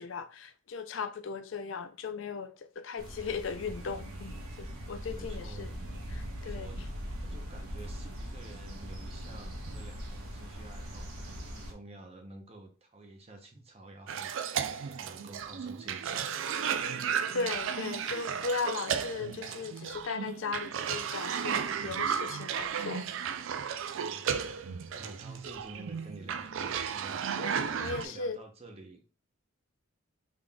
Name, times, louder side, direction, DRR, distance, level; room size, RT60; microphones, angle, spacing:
voice 1, 0.0-5.7 6.1-6.7 17.3-23.1 27.4-28.4, left 5 dB, 60° left, 0.4 m, -37 dB
sound 1, 3.0-11.7, equal, 85° right, 1.0 m, -41 dB
voice 2, 5.0-5.7 6.4-6.9 7.2-14.3 14.7-16.4 23.9-24.6 24.9-27.2 27.7-29.1, right 2 dB, 30° right, 0.7 m, -50 dB
Cough, 14.1-28.0, right 7 dB, 65° right, 0.3 m, -34 dB
3.7 x 3.7 x 2.2 m
head